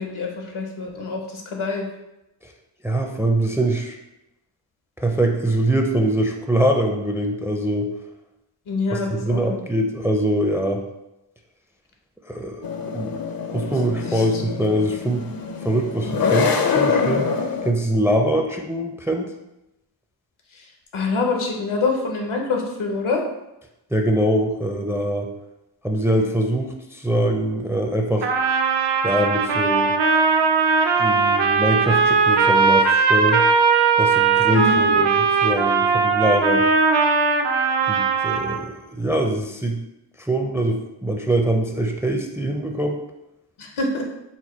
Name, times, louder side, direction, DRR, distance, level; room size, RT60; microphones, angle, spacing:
voice 1, 0.0-1.9 8.7-9.6 14.1-14.4 20.5-20.6 20.9-23.2 34.5-34.9 43.6-44.0, left 3 dB, 80° left, 2 dB, 0.9 m, -26 dB
voice 2, 2.8-4.0 5.0-7.9 8.9-10.8 12.3-13.2 13.5-15.2 15.6-17.3 17.6-19.3 23.9-25.3 25.8-28.3 29.0-29.9 31.0-33.4 34.0-36.6 37.9-39.8 40.2-43.0, right 1 dB, 5° right, 2 dB, 0.4 m, -23 dB
sound 1, 12.6-17.7, left 5 dB, 50° left, 0.5 m, -24 dB
Trumpet, 28.2-38.6, right 5 dB, 60° right, 0.5 m, -19 dB
4.4 x 2.2 x 4.2 m, 0.91 s
wide cardioid pair, 60°, 48 cm